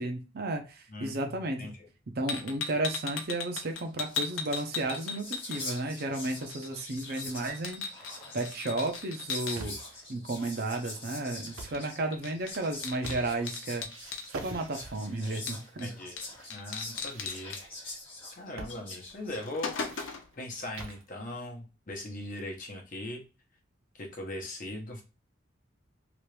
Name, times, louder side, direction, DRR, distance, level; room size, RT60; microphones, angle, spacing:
voice 1, 0.0-1.7 2.2-9.8 10.1-13.9 14.3-15.9, right 2 dB, 50° right, 5 dB, 0.6 m, -33 dB
voice 2, 0.9-1.2 1.6-1.7 15.8-16.2 16.5-17.6 18.3-19.7 20.4-23.2 24.0-25.0, left 1 dB, 40° left, 1 dB, 0.9 m, -39 dB
sound 1, 2.3-6.0 6.3-9.6 11.7-11.9 12.1-14.3 15.5-15.8 16.2-16.3 16.5-17.6 18.7-18.8 19.2-20.4, left 5 dB, 70° left, 0.7 m, -37 dB
Whispering, 3.7-3.8 4.0-19.9, left 2 dB, 25° left, 1.4 m, -45 dB
sound 2, 9.2-10.0 11.4-11.9 12.4-13.6 13.9-15.2 15.9-16.5 16.7-17.8 18.6-18.8 19.1-19.2 19.6-21.1, right 3 dB, 90° right, 0.8 m, -45 dB
3.0 x 2.5 x 3.2 m, 0.31 s
head